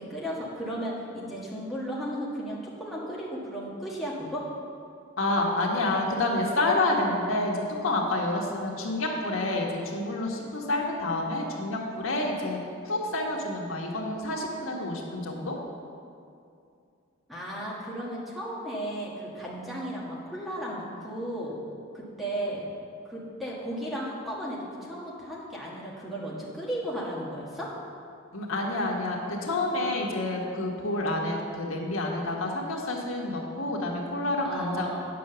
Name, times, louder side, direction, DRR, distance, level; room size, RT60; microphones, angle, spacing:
voice 1, 0.0-4.5 17.3-21.5 21.9-22.7 23.0-27.7 34.4-35.1, equal, ahead, -6 dB, 1.7 m, -35 dB
voice 2, 5.2-12.6 12.8-15.6 28.3-34.9, left 2 dB, 90° left, -1 dB, 1.5 m, -28 dB
9.3 x 5.9 x 6.8 m, 2.5 s
head